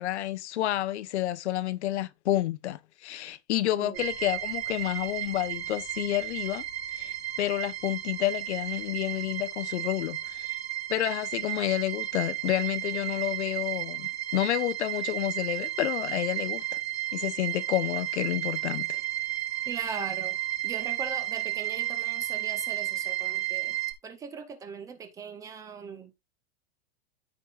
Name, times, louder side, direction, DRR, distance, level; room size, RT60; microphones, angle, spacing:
voice 1, 0.0-6.6 7.0-10.5 10.9-16.6 17.1-19.0, left 14 dB, 85° left, 0.9 m, -30 dB
sound 1, 3.9-23.9, right 15 dB, 70° right, 1.8 m, -33 dB
voice 2, 19.7-20.4 20.6-23.8 24.0-26.2, right 5 dB, 10° right, 0.4 m, -39 dB
13.5 x 4.8 x 2.4 m
supercardioid pair, 165°, 33 cm